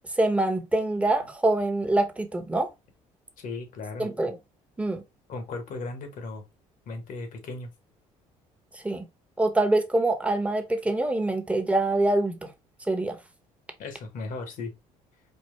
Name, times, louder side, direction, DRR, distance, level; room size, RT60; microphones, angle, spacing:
voice 1, 0.2-2.7 4.0-4.4 4.8-5.0 8.7-9.1 9.4-12.5 12.9-13.2, right 2 dB, 10° right, 1.0 m, -25 dB
voice 2, 3.4-4.1 5.3-6.4 6.9-7.7 13.8-14.7, left 3 dB, 60° left, 1.5 m, -36 dB
4.5 x 2.4 x 3.3 m
supercardioid pair, 75°, 15 cm